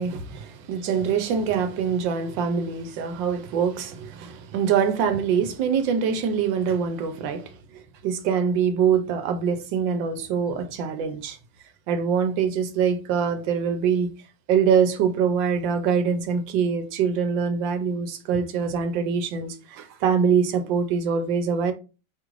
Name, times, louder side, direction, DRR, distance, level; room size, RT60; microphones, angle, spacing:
voice 1, 0.0-11.4 11.9-14.1 14.5-21.7, right 6 dB, 75° right, 1.4 m, -24 dB
4.9 x 2.5 x 3.1 m
omnidirectional pair, 2.0 m